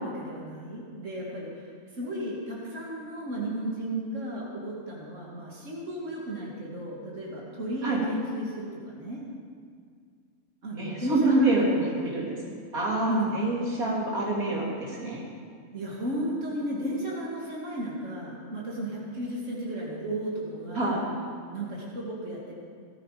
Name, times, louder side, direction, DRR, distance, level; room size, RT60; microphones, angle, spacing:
voice 1, 0.0-9.2 10.6-11.7 13.1-13.4 15.7-20.9 21.5-22.6, right 1 dB, 60° right, -4 dB, 2.9 m, -34 dB
voice 2, 10.8-15.2 20.7-21.0, right 2 dB, 90° right, -4 dB, 3.6 m, -27 dB
18.0 x 14.0 x 5.1 m, 2.1 s
omnidirectional pair, 1.5 m